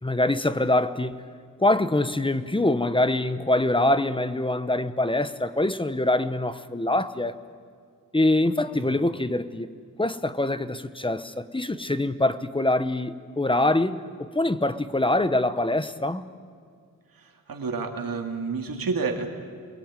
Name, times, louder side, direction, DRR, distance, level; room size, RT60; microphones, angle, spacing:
voice 1, 0.0-1.2 1.6-7.3 8.1-9.7 10.0-16.3, left 2 dB, 15° left, 1.0 m, -24 dB
voice 2, 17.1-19.3, right 4 dB, 85° right, 2.5 m, -30 dB
28.5 x 21.5 x 9.1 m
wide cardioid pair, 100°, 34 cm